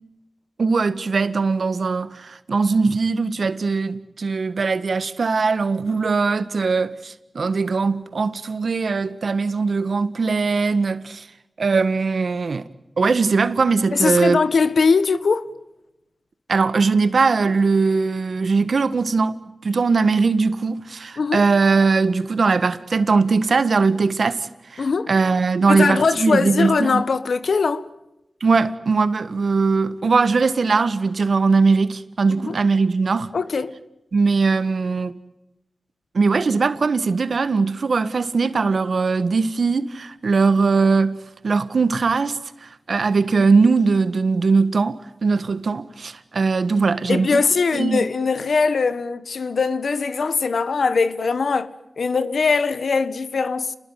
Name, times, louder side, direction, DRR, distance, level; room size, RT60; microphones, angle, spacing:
voice 1, 0.6-11.3 11.6-12.6 13.0-14.4 16.5-27.0 28.4-33.3 34.1-35.1 36.1-47.4 47.7-48.0, right 4 dB, 75° right, 1.6 m, -20 dB
voice 2, 13.9-15.5 21.2-21.4 24.8-25.1 25.7-27.9 32.3-32.6 33.3-33.7 47.1-53.8, left 4 dB, 80° left, 1.4 m, -21 dB
30.0 x 21.0 x 9.3 m
cardioid pair, 40°, 0 cm